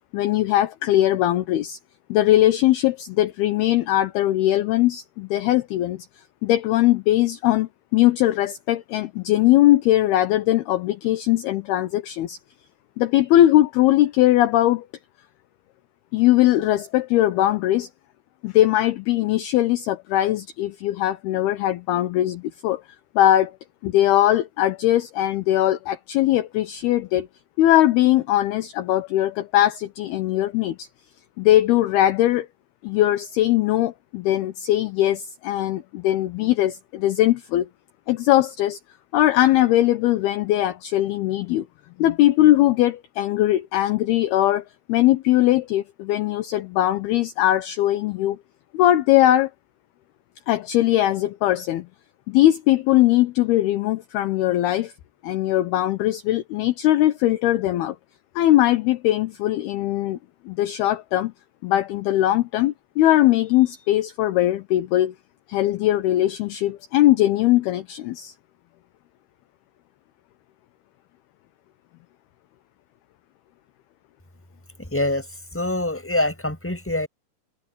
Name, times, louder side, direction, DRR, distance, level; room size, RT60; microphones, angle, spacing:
voice 1, 0.1-1.8 2.1-6.1 6.4-12.4 13.0-14.9 16.1-17.9 18.4-22.8 23.2-23.6 23.8-27.3 27.6-30.9 31.4-32.5 32.8-37.7 38.1-38.8 39.1-41.7 42.0-48.4 48.7-49.5 50.5-51.9 52.3-54.9 55.2-58.0 58.4-60.2 60.5-61.3 61.6-65.1 65.5-68.3, left 14 dB, 75° left, 2.5 m, -20 dB
voice 2, 74.9-75.2 75.5-77.1, left 1 dB, 5° left, 5.9 m, -24 dB
omnidirectional pair, 5.3 m